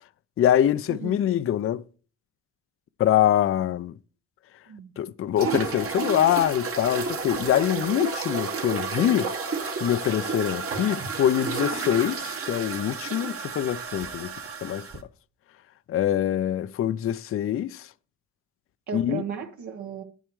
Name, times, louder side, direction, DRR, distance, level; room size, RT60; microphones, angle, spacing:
voice 1, 0.4-1.8 3.0-3.9 5.0-9.3 9.8-14.3 14.6-14.9 15.9-17.9 18.9-19.2, left 11 dB, 45° left, 0.5 m, -24 dB
sound 1, 5.4-15.0, right 4 dB, 50° right, 1.4 m, -31 dB
voice 2, 18.9-20.0, right 7 dB, 70° right, 1.3 m, -35 dB
9.4 x 9.0 x 3.1 m
cardioid pair, 90°, 30 cm